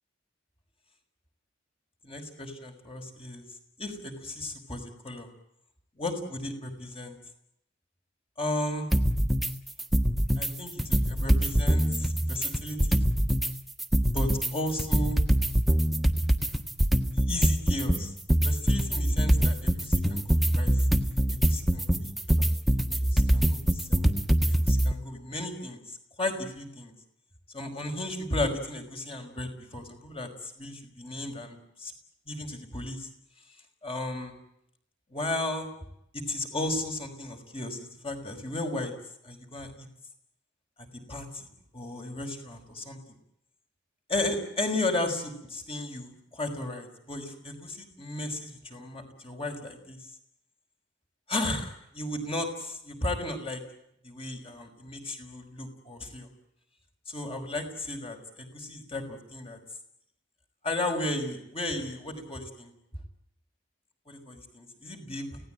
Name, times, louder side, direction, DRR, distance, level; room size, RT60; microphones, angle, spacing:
voice 1, 2.0-3.4 3.8-5.3 6.0-7.2 8.4-8.9 10.4-13.1 14.1-15.2 17.3-18.1 18.4-20.7 21.5-22.1 22.4-22.5 22.9-24.1 24.5-25.8 26.2-26.9 27.5-31.9 32.3-33.1 33.8-34.3 35.1-35.7 36.1-38.9 39.2-39.9 41.1-41.5 41.7-43.2 44.1-50.0 51.3-53.6 54.0-56.3 57.1-59.6 60.6-62.7 64.1-65.4, left 2 dB, 30° left, 4 dB, 5.4 m, -34 dB
sound 1, 8.9-9.5 9.8-10.5 10.8-13.5 13.8-24.9, right 1 dB, ahead, 1.5 m, -24 dB
29.5 x 18.0 x 9.1 m, 0.78 s
head